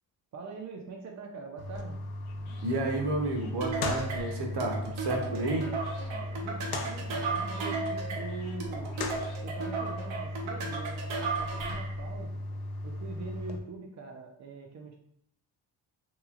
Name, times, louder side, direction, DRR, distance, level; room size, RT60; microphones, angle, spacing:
voice 1, 0.3-2.0 6.4-9.0 9.4-12.4 12.8-15.0, right 4 dB, 40° right, 1 dB, 0.5 m, -43 dB
sound 1, 1.6-13.6, left 1 dB, 55° left, 0.6 m, -37 dB
sound 2, 2.2-9.4, left 2 dB, 85° left, 0.8 m, -51 dB
voice 2, 2.6-5.7, right 2 dB, 60° right, 2 dB, 0.8 m, -31 dB
sound 3, 3.6-12.0, right 4 dB, 90° right, 0.8 m, -35 dB
3.0 x 2.9 x 2.4 m, 0.71 s
cardioid pair, 70°, 46 cm